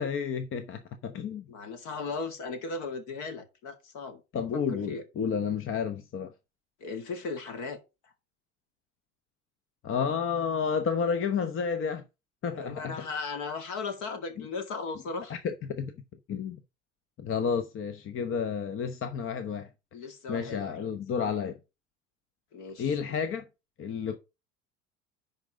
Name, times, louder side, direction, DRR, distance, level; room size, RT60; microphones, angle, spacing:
voice 1, 0.0-1.4 4.3-6.3 9.8-12.0 12.4-13.0 14.4-14.5 15.3-15.9 16.3-16.6 17.2-19.7 20.3-21.6 22.8-23.4 23.8-24.2, left 6 dB, 35° left, 0.9 m, -31 dB
voice 2, 1.5-4.2 4.5-4.6 4.9-5.0 6.8-7.8 8.0-8.1 12.5-15.4 19.9-20.8 22.5-23.0, left 4 dB, 55° left, 2.1 m, -37 dB
10.5 x 4.0 x 5.0 m
hypercardioid pair, 70°, 37 cm